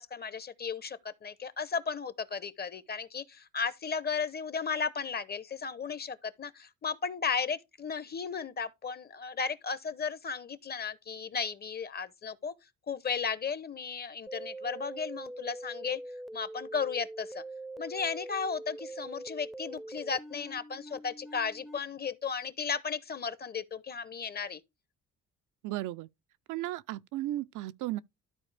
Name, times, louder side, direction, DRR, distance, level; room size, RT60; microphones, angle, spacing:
voice 1, 0.0-12.5 12.9-16.0 16.3-17.4 17.8-24.6, left 6 dB, 35° left, 0.7 m, -35 dB
sound 1, 14.3-21.8, right 1 dB, ahead, 0.5 m, -43 dB
voice 2, 25.6-26.1 26.5-28.0, right 15 dB, 85° right, 0.5 m, -35 dB
12.5 x 4.3 x 3.3 m
cardioid pair, 90°, 30 cm